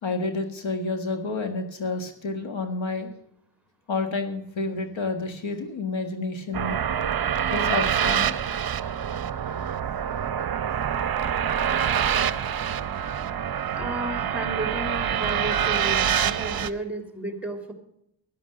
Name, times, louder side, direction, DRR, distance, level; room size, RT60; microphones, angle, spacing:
voice 1, 0.0-3.1 3.9-6.8 7.5-8.4 8.7-8.8, left 3 dB, 65° left, 7 dB, 1.7 m, -29 dB
sound 1, 6.5-16.7, right 9 dB, 45° right, 0.8 m, -26 dB
voice 2, 13.8-17.7, right 2 dB, 5° right, 5 dB, 2.6 m, -33 dB
11.5 x 11.0 x 6.5 m, 0.75 s
cardioid pair, 90°, 49 cm